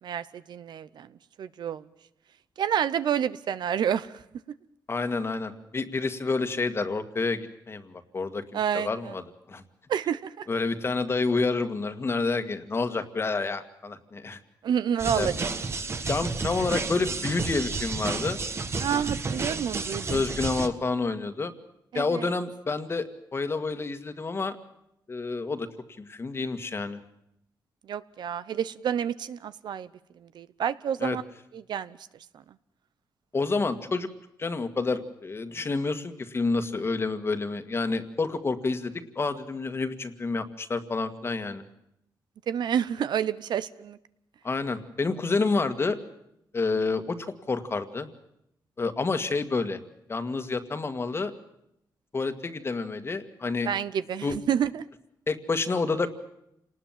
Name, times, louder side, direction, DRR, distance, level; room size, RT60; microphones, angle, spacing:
voice 1, 0.0-1.9 2.6-4.2 8.5-9.1 9.9-10.5 14.6-15.5 18.8-20.2 21.9-22.3 27.8-29.9 30.1-31.2 31.5-32.0 32.3-32.4 42.5-44.0 53.7-54.8, right 8 dB, 80° right, 15 dB, 0.9 m, -29 dB
voice 2, 4.9-7.4 7.7-8.4 8.7-9.2 9.5-9.6 10.5-14.4 15.1-15.3 16.1-18.4 20.1-21.5 21.9-24.6 25.1-25.7 26.0-27.0 31.0-31.2 33.3-34.1 34.4-41.6 44.4-46.0 46.5-48.1 48.8-49.8 50.1-51.3 52.1-53.7 54.2-54.4 55.3-56.1, left 3 dB, 35° left, 10 dB, 1.9 m, -29 dB
sound 1, 15.0-20.7, right 4 dB, 35° right, 1.5 m, -31 dB
28.0 x 19.5 x 7.5 m, 0.80 s
cardioid pair, 105°, 7 cm